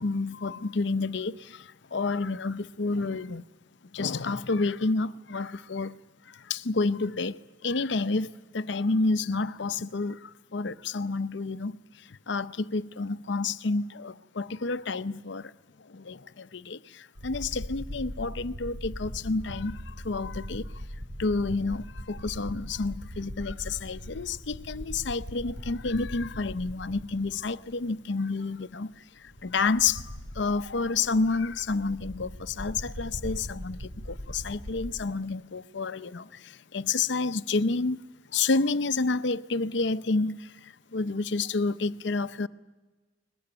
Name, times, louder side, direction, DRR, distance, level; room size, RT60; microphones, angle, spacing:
voice 1, 0.0-1.3 1.9-3.4 3.9-5.9 6.5-7.4 7.6-8.3 8.5-10.2 10.5-11.7 12.3-15.4 15.9-16.8 17.2-19.8 20.0-20.6 21.2-28.9 29.4-30.0 30.4-33.8 34.1-36.2 36.7-38.0 38.3-40.4 40.9-42.5, left 3 dB, 65° left, 0.7 m, -29 dB
sound 1, 17.2-27.8 28.1-28.2 29.3-34.9, equal, 85° right, 4.0 m, -40 dB
22.0 x 20.5 x 9.0 m
head